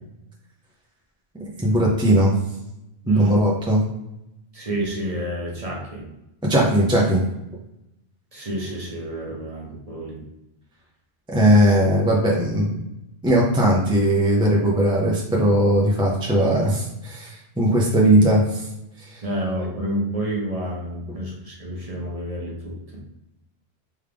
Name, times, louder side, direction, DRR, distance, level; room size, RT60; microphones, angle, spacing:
voice 1, 1.3-2.3 3.2-3.8 6.4-7.2 11.3-12.8 13.2-18.6 19.0-19.2, right 1 dB, 5° right, -3 dB, 0.6 m, -19 dB
voice 2, 3.0-3.5 4.5-6.1 8.3-10.2 19.2-23.0, right 1 dB, 35° right, -3 dB, 1.0 m, -28 dB
3.5 x 3.5 x 3.4 m, 0.89 s
omnidirectional pair, 1.1 m